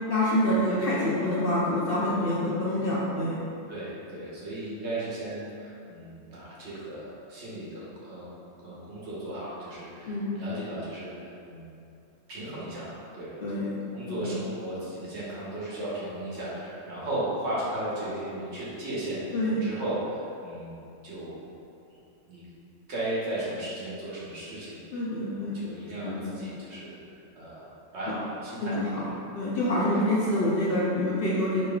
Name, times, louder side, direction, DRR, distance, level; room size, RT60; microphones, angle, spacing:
voice 1, 0.0-3.3 10.1-10.4 13.4-13.7 14.1-14.2 19.3-19.6 24.9-25.6 26.0-26.3 28.6-29.0 29.3-31.6, left 1 dB, 60° left, -6 dB, 0.6 m, -26 dB
voice 2, 3.7-8.3 8.6-11.7 12.3-13.4 13.9-21.4 22.3-22.4 22.9-27.0 27.3-27.7 27.9-29.1 29.9-30.0, right 1 dB, 60° right, -8 dB, 1.2 m, -36 dB
4.9 x 3.1 x 2.3 m, 2.6 s
omnidirectional pair, 1.3 m